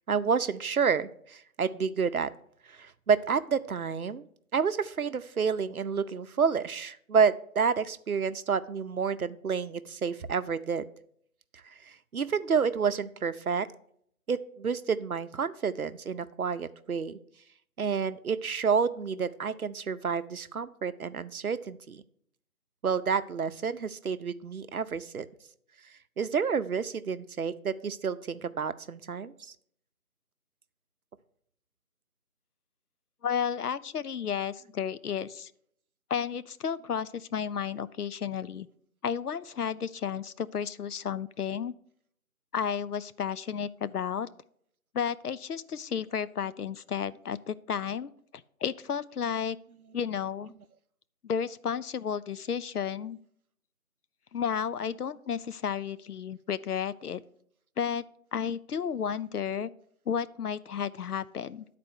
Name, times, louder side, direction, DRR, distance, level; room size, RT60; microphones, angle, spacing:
voice 1, 0.1-2.3 2.7-4.2 4.5-10.8 12.1-13.7 14.3-17.2 17.8-22.0 22.8-25.3 26.2-29.5, right 6 dB, 70° right, 12 dB, 0.6 m, -29 dB
voice 2, 33.2-35.5 36.1-38.7 39.0-41.7 42.5-44.3 44.9-48.1 48.6-49.6 49.9-50.5 51.2-53.2 54.3-57.2 57.8-58.0 58.3-59.7 60.1-61.6, left 7 dB, 85° left, 15 dB, 0.6 m, -32 dB
10.5 x 4.2 x 6.2 m, 0.67 s
figure-of-eight pair, 175°, 44 cm